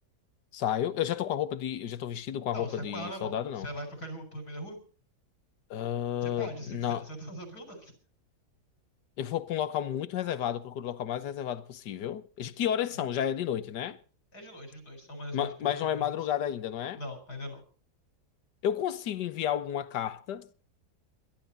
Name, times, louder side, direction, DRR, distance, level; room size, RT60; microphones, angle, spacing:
voice 1, 0.5-3.7 5.7-7.0 9.2-14.0 15.3-17.0 18.6-20.5, left 10 dB, 90° left, 1.6 m, -31 dB
voice 2, 2.5-4.8 6.2-7.9 14.3-16.1 17.0-17.6, equal, 65° left, 4.5 m, -41 dB
22.5 x 12.0 x 4.0 m
omnidirectional pair, 1.8 m